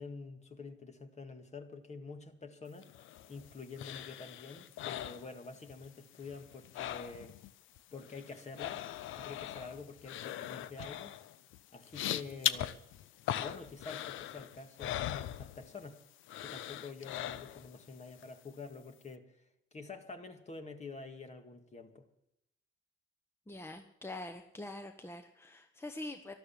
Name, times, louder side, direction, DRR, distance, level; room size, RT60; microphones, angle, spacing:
voice 1, 0.0-2.9 3.3-7.3 7.9-8.9 9.2-11.2 11.7-12.8 13.4-16.0 16.4-19.3 19.7-22.1, left 4 dB, 35° left, 7 dB, 1.9 m, -47 dB
sound 1, 2.8-5.9 6.1-7.5 7.8-15.9 16.3-17.8 18.2-18.3, left 12 dB, 80° left, 0.6 m, -40 dB
voice 2, 23.5-26.3, left 2 dB, 10° left, 7 dB, 1.1 m, -44 dB
13.0 x 12.0 x 7.3 m, 0.83 s
cardioid pair, 90°, 20 cm